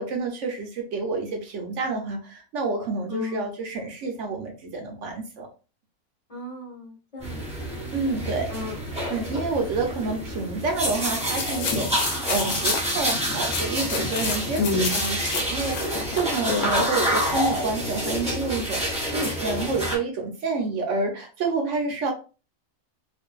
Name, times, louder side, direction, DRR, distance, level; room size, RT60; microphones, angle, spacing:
voice 1, 0.0-5.5 7.9-8.7 9.1-22.1, right 3 dB, 65° right, 3 dB, 0.8 m, -29 dB
voice 2, 3.1-3.5 6.3-7.4 8.5-8.8 14.6-15.0 16.5-16.7, left 2 dB, 35° left, -5 dB, 0.6 m, -29 dB
sound 1, 7.2-20.0, equal, 5° right, 0.7 m, -28 dB
sound 2, 11.4-17.5, left 5 dB, 85° left, 1.1 m, -31 dB
2.5 x 2.4 x 2.2 m, 0.33 s
omnidirectional pair, 1.6 m